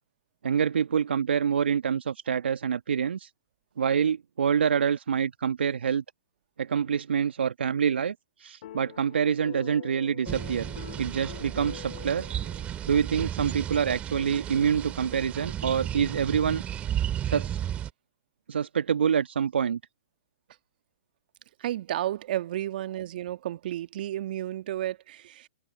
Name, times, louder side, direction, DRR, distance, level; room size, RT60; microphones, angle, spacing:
voice 1, 0.4-3.3 3.8-6.0 6.6-10.6 11.0-12.3 12.8-16.6 17.2-17.6 18.5-19.8, right 7 dB, 70° right, 1.4 m, -26 dB
sound 1, 8.6-13.1, left 13 dB, 55° left, 3.4 m, -45 dB
sound 2, 10.3-17.9, right 10 dB, 20° right, 2.6 m, -34 dB
voice 2, 21.6-25.5, right 13 dB, 55° right, 1.5 m, -32 dB
figure-of-eight pair, 120°, 6 cm